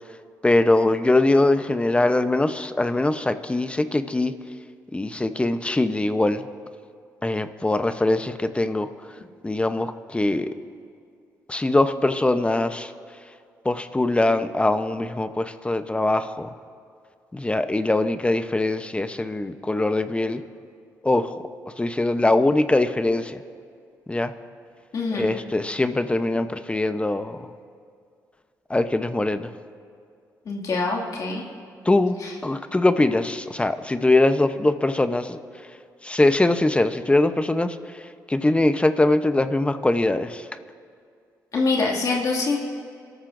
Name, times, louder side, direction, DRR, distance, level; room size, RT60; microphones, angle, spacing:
voice 1, 0.4-4.3 4.9-6.5 7.2-8.9 9.4-10.5 11.5-12.9 13.6-16.6 17.3-20.4 21.0-21.3 21.8-23.4 24.1-24.3 25.1-27.5 28.7-29.5 31.8-32.2 32.4-35.4 36.0-38.0 38.3-40.5, left 2 dB, 15° left, 10 dB, 0.8 m, -22 dB
voice 2, 24.9-25.3 30.5-31.4 32.2-32.3 41.5-42.6, left 3 dB, 55° left, -1 dB, 2.3 m, -24 dB
26.5 x 13.0 x 2.6 m, 2.3 s
supercardioid pair, 65°, 7 cm